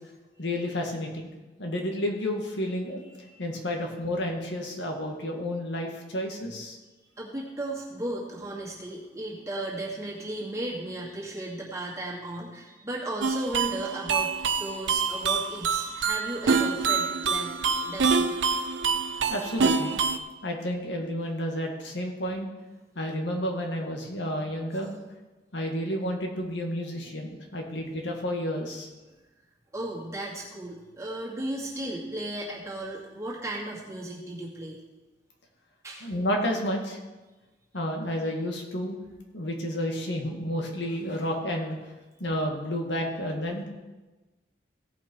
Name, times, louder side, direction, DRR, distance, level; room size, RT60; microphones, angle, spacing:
voice 1, 0.4-1.3 1.6-3.0 3.4-6.8 19.3-20.0 20.4-22.5 23.0-24.9 25.5-28.9 36.0-37.0 37.7-39.0 39.3-41.8 42.2-43.7, equal, 80° left, 1 dB, 1.8 m, -31 dB
voice 2, 7.2-14.3 14.6-17.5 17.8-18.3 29.7-34.8 35.8-36.1, right 1 dB, 15° right, -4 dB, 2.0 m, -35 dB
Kawaii Music Box, 13.2-20.2, right 5 dB, 90° right, 0.7 m, -26 dB
17.0 x 5.9 x 4.6 m, 1.1 s
head